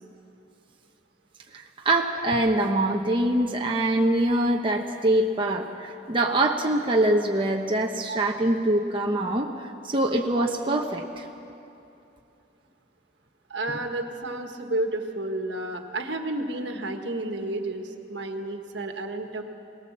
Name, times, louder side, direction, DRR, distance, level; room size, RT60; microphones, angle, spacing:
voice 1, 1.5-11.3, right 1 dB, 25° right, 1 dB, 0.9 m, -24 dB
voice 2, 13.5-19.4, right 2 dB, 70° right, 5 dB, 1.5 m, -31 dB
22.0 x 19.0 x 7.4 m, 2.7 s
head